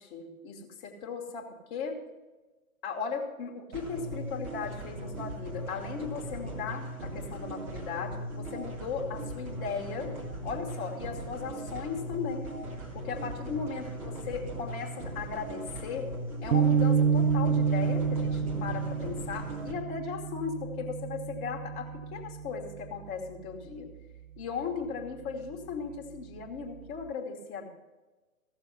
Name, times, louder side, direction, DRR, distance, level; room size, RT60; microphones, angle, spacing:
voice 1, 0.0-2.0 2.8-10.1 10.4-12.5 12.9-16.1 16.4-23.9 24.4-27.7, left 5 dB, 25° left, 1 dB, 1.7 m, -37 dB
sound 1, 3.7-19.7, right 1 dB, 20° right, 2.0 m, -39 dB
sound 2, 16.5-22.9, right 6 dB, 70° right, 0.6 m, -28 dB
15.5 x 6.8 x 5.5 m, 1.2 s
figure-of-eight pair, 125°, 42 cm